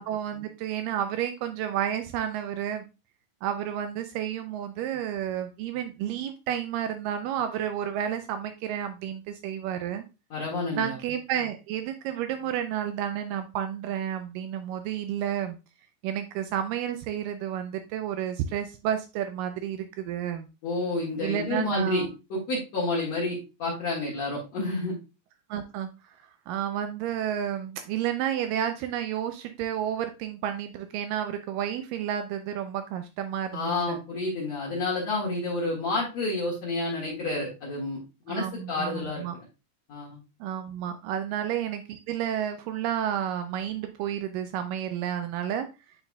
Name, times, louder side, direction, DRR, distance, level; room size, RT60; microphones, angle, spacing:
voice 1, 0.0-2.9 3.4-10.0 10.7-15.6 16.0-20.5 21.2-22.1 25.5-25.9 26.5-34.0 38.3-39.4 40.4-45.7, right 10 dB, 80° right, 8 dB, 2.1 m, -31 dB
voice 2, 10.3-11.0 20.6-25.0 33.5-38.0 38.2-39.2 39.9-40.2, left 2 dB, 55° left, -7 dB, 2.7 m, -29 dB
9.4 x 4.6 x 2.2 m, 0.28 s
omnidirectional pair, 4.0 m